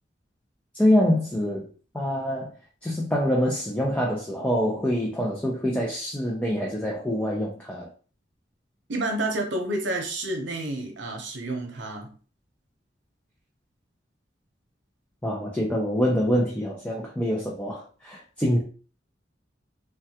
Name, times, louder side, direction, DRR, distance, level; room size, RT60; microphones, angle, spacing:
voice 1, 0.7-1.7 1.9-2.5 2.8-7.9 15.2-18.6, equal, 5° left, -4 dB, 0.5 m, -25 dB
voice 2, 8.9-12.1, right 2 dB, 80° right, 3 dB, 0.8 m, -29 dB
3.4 x 2.2 x 2.8 m, 0.39 s
head